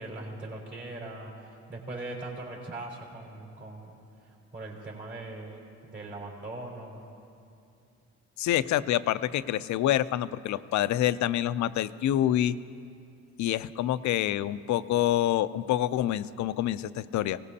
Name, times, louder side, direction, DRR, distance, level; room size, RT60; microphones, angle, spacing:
voice 1, 0.0-7.0, right 2 dB, 40° right, -1 dB, 3.5 m, -41 dB
voice 2, 8.4-12.6 13.4-17.4, left 12 dB, 70° left, 14 dB, 0.5 m, -27 dB
24.0 x 18.0 x 2.8 m, 2.5 s
cardioid pair, 90°, 30 cm